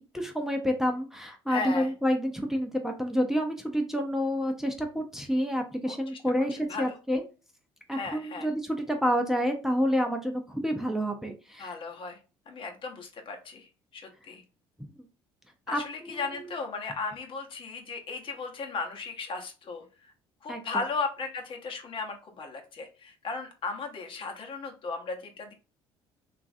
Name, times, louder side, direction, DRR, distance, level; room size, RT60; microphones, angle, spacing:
voice 1, 0.1-7.2 7.9-11.8 15.7-16.5 20.5-20.6, equal, 5° right, 2 dB, 0.6 m, -29 dB
voice 2, 1.5-1.9 5.9-6.0 6.7-7.0 7.9-8.5 11.6-12.2 12.5-13.7 13.9-14.4 15.7-19.8 20.4-25.5, left 4 dB, 50° left, 3 dB, 0.8 m, -36 dB
3.0 x 2.4 x 2.6 m, 0.33 s
supercardioid pair, 75°, 11 cm